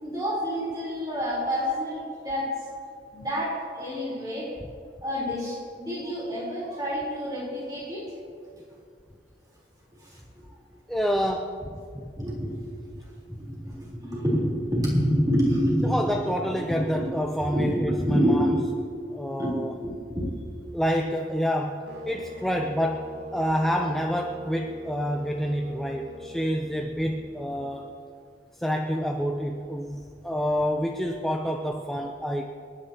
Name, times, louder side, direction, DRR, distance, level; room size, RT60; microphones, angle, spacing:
voice 1, 0.0-2.5 3.1-4.5 5.0-8.1 10.0-10.6 12.2-12.7 13.3-17.0 17.5-18.6 19.4-19.6 19.8-20.3 27.5-27.6, equal, 20° right, -5 dB, 3.9 m, -28 dB
voice 2, 10.9-12.1 15.8-18.5 19.1-19.7 20.7-27.9 28.6-32.4, equal, ahead, 2 dB, 0.6 m, -28 dB
sound 1, 21.9-27.9, equal, 65° right, 1.7 m, -41 dB
28.5 x 10.0 x 3.0 m, 2.4 s
head